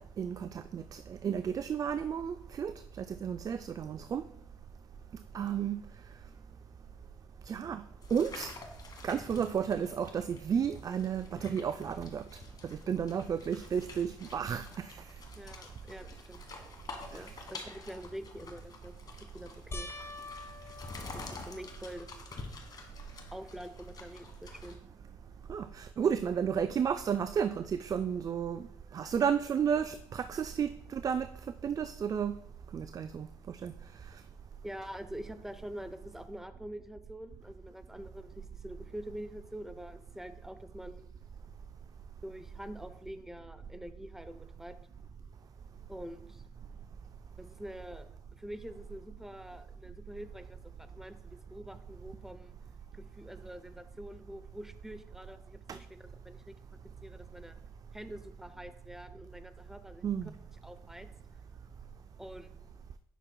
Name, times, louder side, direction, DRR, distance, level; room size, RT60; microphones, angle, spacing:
voice 1, 0.0-4.2 5.3-5.8 7.5-7.8 8.1-8.5 9.0-12.2 12.6-15.0 17.1-17.2 25.5-28.7 28.9-31.3 31.6-32.3 32.7-33.7 55.7-55.8 60.0-60.3, right 7 dB, 40° right, 11 dB, 0.3 m, -32 dB
sound 1, 8.0-24.8, left 3 dB, 45° left, 1.4 m, -49 dB
voice 2, 15.4-16.5 17.1-18.9 19.2-19.9 21.1-22.1 23.3-24.8 34.6-41.1 42.2-44.7 45.9-46.4 47.4-52.5 52.9-56.5 57.0-57.6 57.9-60.1 60.6-61.1 62.2-62.5, equal, 5° right, 11 dB, 0.7 m, -46 dB
sound 2, 19.7-22.3 22.9-23.5 23.8-23.9 27.1-27.2, left 2 dB, 30° left, 1.2 m, -46 dB
9.1 x 5.8 x 2.2 m, 0.80 s
hypercardioid pair, 55°, 9 cm